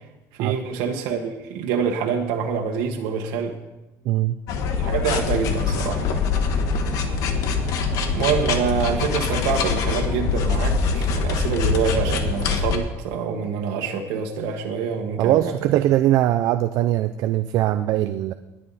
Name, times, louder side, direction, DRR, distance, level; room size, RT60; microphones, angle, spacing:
voice 1, 0.3-3.6 4.7-6.3 8.1-15.7, right 6 dB, 90° right, 1 dB, 1.6 m, -26 dB
voice 2, 4.1-4.4 15.2-18.3, right 13 dB, 50° right, 10 dB, 0.5 m, -21 dB
sound 1, 4.5-12.8, left 5 dB, 55° left, 1.4 m, -23 dB
20.0 x 9.9 x 4.2 m, 1.0 s
cardioid pair, 175°, 7 cm